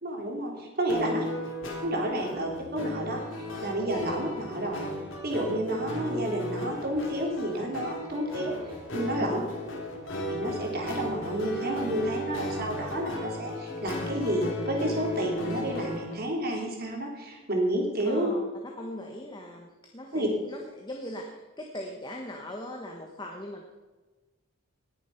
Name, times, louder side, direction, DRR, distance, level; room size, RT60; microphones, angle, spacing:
voice 1, 0.0-1.2 1.8-4.9 5.2-9.4 10.3-18.3 20.1-20.3, right 1 dB, 45° right, 0 dB, 3.1 m, -30 dB
sound 1, 0.9-16.1, left 1 dB, 60° left, 3.6 m, -35 dB
voice 2, 18.0-18.5 18.8-23.7, left 1 dB, 20° left, 1 dB, 1.2 m, -40 dB
19.0 x 7.1 x 5.8 m, 1.2 s
head